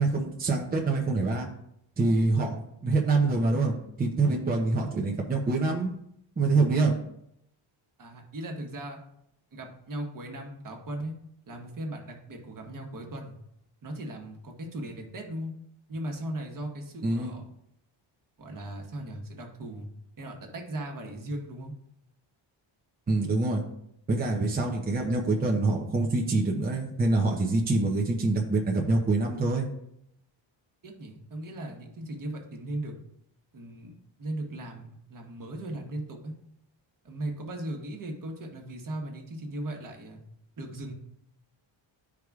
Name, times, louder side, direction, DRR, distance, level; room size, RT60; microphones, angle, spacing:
voice 1, 0.0-1.5 2.0-5.9 6.4-6.9 17.0-17.3 23.1-23.6 24.1-29.7, right 3 dB, 20° right, 0 dB, 0.7 m, -25 dB
voice 2, 8.0-9.0 9.5-11.1 11.5-13.3 13.8-15.5 15.9-17.4 18.4-19.9 20.2-21.7 30.8-32.9 33.5-33.9 34.2-36.3 37.0-40.2 40.6-40.9, right 1 dB, 40° right, 2 dB, 1.3 m, -37 dB
12.0 x 4.8 x 2.4 m, 0.76 s
wide cardioid pair, 155°, 48 cm